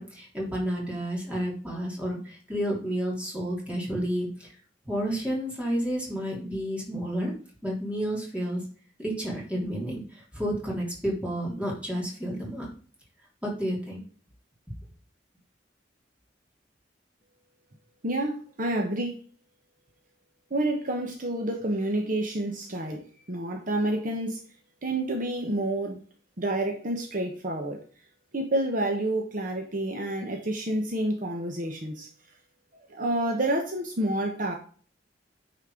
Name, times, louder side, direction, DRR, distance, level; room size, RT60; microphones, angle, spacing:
voice 1, 0.0-4.5 4.8-7.3 7.6-8.6 9.0-12.7 13.4-14.0, equal, 10° right, -3 dB, 3.3 m, -31 dB
voice 2, 18.0-19.2 20.5-23.0 23.3-24.4 24.8-26.0 26.4-27.8 28.3-32.1 32.7-34.5, right 1 dB, 50° right, 3 dB, 1.2 m, -29 dB
9.4 x 4.4 x 5.0 m, 0.42 s
head